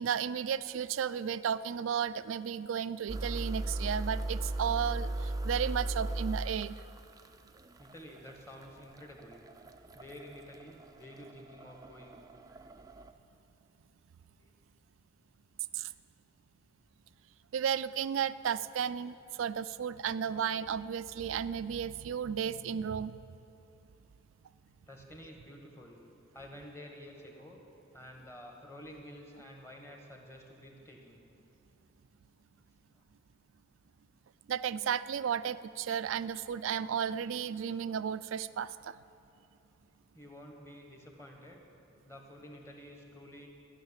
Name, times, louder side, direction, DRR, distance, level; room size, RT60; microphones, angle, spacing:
voice 1, 0.0-6.8 15.7-15.9 17.5-23.1 34.5-38.9, right 8 dB, 90° right, 15 dB, 0.4 m, -33 dB
sound 1, 3.1-13.1, right 2 dB, 20° right, 0.4 m, -38 dB
voice 2, 7.8-9.4 9.9-12.2 14.4-14.5 24.9-26.0 26.3-27.6 27.9-31.2 32.9-33.0 40.1-41.6 42.0-43.5, left 1 dB, 15° left, 1 dB, 1.4 m, -50 dB
13.5 x 6.5 x 9.8 m, 2.9 s
head